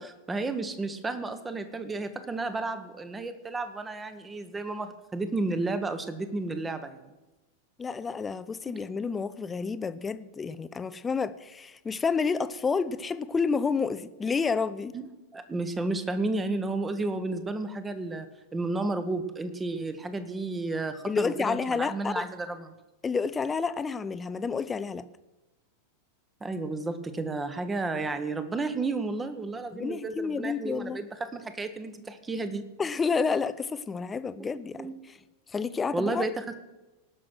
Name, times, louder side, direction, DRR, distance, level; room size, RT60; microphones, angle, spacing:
voice 1, 0.0-7.1 8.7-8.8 14.9-15.1 15.3-22.7 26.4-32.6 34.8-34.9 35.9-36.6, right 3 dB, 15° right, 1.1 m, -32 dB
voice 2, 7.8-15.0 21.1-22.2 23.0-25.1 29.7-31.0 32.8-34.9 35.5-36.3, left 5 dB, 15° left, 0.6 m, -29 dB
18.5 x 6.2 x 6.2 m
figure-of-eight pair, 90°, 0 cm